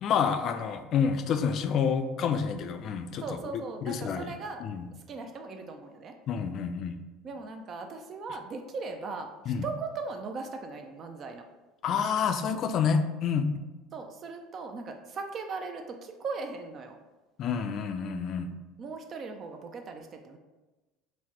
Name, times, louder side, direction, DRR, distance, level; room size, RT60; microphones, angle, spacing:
voice 1, 0.0-3.2 3.8-4.3 4.6-4.9 6.3-7.0 9.5-9.7 11.8-13.5 17.4-18.5, left 6 dB, 50° left, 8 dB, 0.3 m, -28 dB
voice 2, 3.2-4.6 5.1-6.2 7.2-11.5 13.9-17.0 18.8-20.4, right 4 dB, 45° right, 5 dB, 0.3 m, -38 dB
3.9 x 2.1 x 3.0 m, 1.1 s
supercardioid pair, 100°, 0 cm